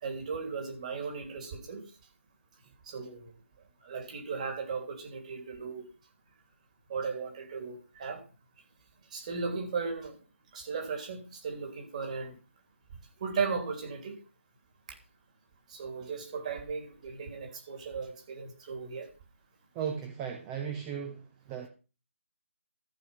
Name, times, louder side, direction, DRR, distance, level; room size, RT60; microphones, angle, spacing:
voice 1, 0.0-1.8 2.8-3.3 3.8-5.8 6.9-8.2 9.1-10.2 10.5-12.4 13.2-14.2 15.7-19.1, right 5 dB, 30° right, 3.1 m, -36 dB
voice 2, 19.7-21.7, right 7 dB, 15° right, 0.8 m, -36 dB
14.0 x 4.8 x 7.2 m
hypercardioid pair, 170°, 7 cm